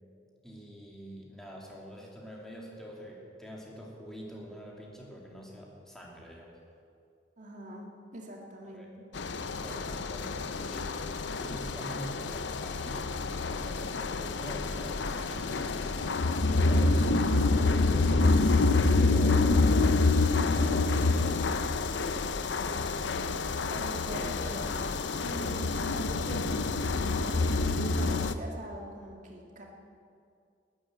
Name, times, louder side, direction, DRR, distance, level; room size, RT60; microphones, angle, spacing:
voice 1, 0.4-6.5 8.6-8.9 9.6-10.9 11.3-18.5 18.9-21.9, equal, 5° left, -3 dB, 2.8 m, -46 dB
voice 2, 7.4-9.1 23.7-24.9 25.2-29.6, right 1 dB, 45° right, 0 dB, 2.3 m, -43 dB
sound 1, 9.1-28.3, left 3 dB, 85° left, 0.7 m, -27 dB
13.5 x 11.5 x 8.1 m, 2.4 s
head